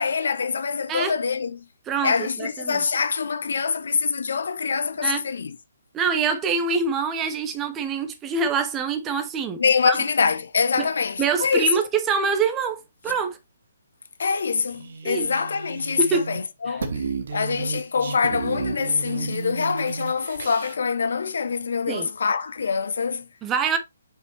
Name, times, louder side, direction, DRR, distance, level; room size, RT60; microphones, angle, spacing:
voice 1, 0.0-1.6 2.0-5.6 9.6-11.9 14.2-17.0 17.3-23.3, left 5 dB, 60° left, 0.8 m, -25 dB
voice 2, 1.9-2.8 5.0-5.2 5.9-9.6 9.9-10.0 10.8-10.9 11.2-13.4 15.0-15.3 16.0-16.3 16.7-16.8 21.9-22.1 23.4-23.8, right 5 dB, 15° right, 1.2 m, -25 dB
sound 1, 14.7-16.4 16.7-20.8, right 4 dB, 55° right, 1.3 m, -33 dB
5.6 x 5.6 x 3.2 m
figure-of-eight pair, 135°, 0 cm